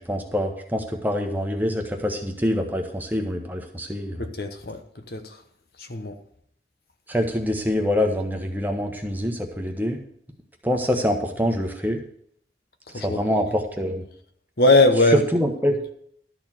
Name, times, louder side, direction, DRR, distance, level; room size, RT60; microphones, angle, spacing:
voice 1, 0.0-4.3 7.1-10.0 10.6-12.0 12.9-14.0 15.3-15.8, left 1 dB, 10° right, 1.0 m, -25 dB
voice 2, 4.2-4.8 5.1-5.4 5.8-6.2 12.9-13.4 14.6-15.2, left 2 dB, 60° left, 1.0 m, -20 dB
12.5 x 4.4 x 7.3 m
head